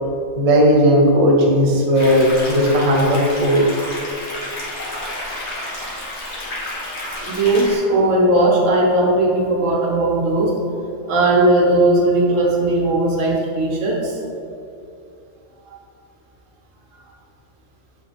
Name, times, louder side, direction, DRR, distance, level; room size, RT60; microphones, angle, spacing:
voice 1, 0.4-3.7, equal, 35° right, -2 dB, 0.8 m, -15 dB
sound 1, 1.9-7.8, left 1 dB, 60° left, 1.5 m, -30 dB
voice 2, 7.2-10.5 11.1-14.2 15.6-15.7, right 1 dB, 80° right, -2 dB, 1.4 m, -17 dB
7.4 x 3.8 x 3.5 m, 2.6 s
omnidirectional pair, 1.3 m